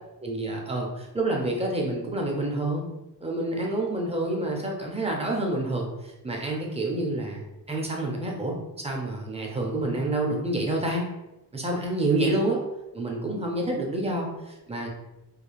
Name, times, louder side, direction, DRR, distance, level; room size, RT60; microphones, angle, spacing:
voice 1, 0.2-2.9 3.2-5.9 6.2-8.5 8.8-11.0 11.5-12.6 12.9-14.9, right 2 dB, 15° right, -1 dB, 0.4 m, -28 dB
3.0 x 2.4 x 2.2 m, 0.99 s
wide cardioid pair, 165°, 41 cm